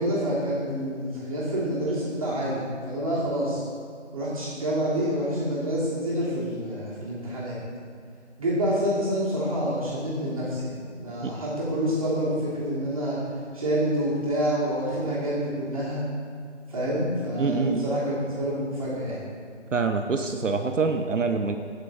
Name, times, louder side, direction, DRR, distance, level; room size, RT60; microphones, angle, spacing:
voice 1, 0.0-3.6 4.1-7.6 8.4-13.2 13.5-16.0 16.7-19.2, equal, 30° right, -8 dB, 2.9 m, -27 dB
voice 2, 17.4-17.9 19.7-21.6, right 4 dB, 85° right, 6 dB, 0.8 m, -25 dB
15.5 x 6.4 x 4.0 m, 2.1 s
figure-of-eight pair, 170°, 36 cm